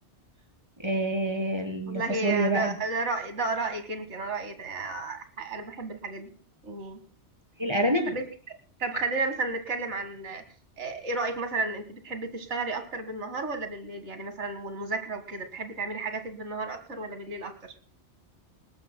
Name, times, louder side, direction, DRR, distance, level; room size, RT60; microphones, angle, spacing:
voice 1, 0.8-2.8 7.6-8.1, right 1 dB, 25° right, 3 dB, 3.0 m, -27 dB
voice 2, 1.9-6.3 6.6-7.0 8.1-8.3 8.8-10.4 10.8-17.7, right 3 dB, 90° right, 8 dB, 2.1 m, -32 dB
20.0 x 19.0 x 2.2 m, 0.38 s
omnidirectional pair, 1.2 m